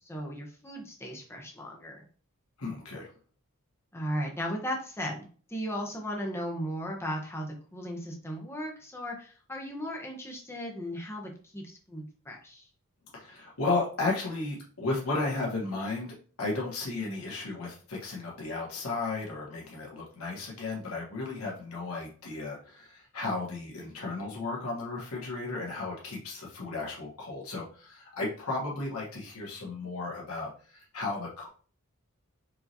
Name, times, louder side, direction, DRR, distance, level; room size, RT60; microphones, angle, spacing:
voice 1, 0.1-2.0 3.9-12.7, equal, 10° left, 0 dB, 0.9 m, -36 dB
voice 2, 2.6-3.1 13.1-31.5, left 3 dB, 80° left, -3 dB, 1.3 m, -34 dB
4.5 x 3.1 x 2.7 m, 0.41 s
head